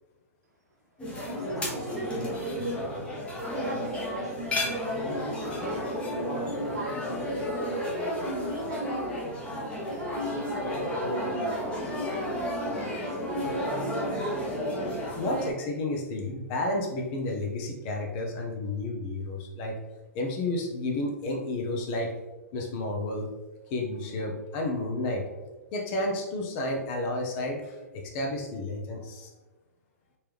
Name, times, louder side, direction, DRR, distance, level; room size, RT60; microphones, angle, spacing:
sound 1, 1.0-15.5, equal, 10° left, 1.1 m, -32 dB
voice 1, 1.0-3.2 3.5-14.1, right 1 dB, 80° right, -1 dB, 1.3 m, -38 dB
voice 2, 15.2-19.8 20.1-22.1 22.5-23.3 23.7-25.2 25.7-29.3, left 2 dB, 40° left, 2 dB, 0.9 m, -31 dB
4.3 x 3.6 x 3.4 m, 1.1 s
figure-of-eight pair, 115°, 9 cm